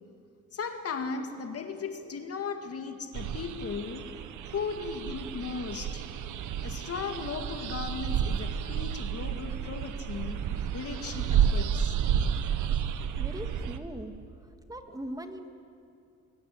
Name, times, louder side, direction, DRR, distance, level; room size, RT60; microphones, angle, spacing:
voice 1, 0.5-4.1 4.5-6.1 6.6-10.5 10.7-11.9, left 5 dB, 50° left, 6 dB, 2.1 m, -36 dB
sound 1, 3.1-13.8, right 8 dB, 80° right, 1.5 m, -31 dB
voice 2, 13.2-14.1 14.7-15.5, right 1 dB, 10° right, 6 dB, 2.3 m, -39 dB
24.5 x 23.0 x 8.5 m, 2.5 s
cardioid pair, 90°, 30 cm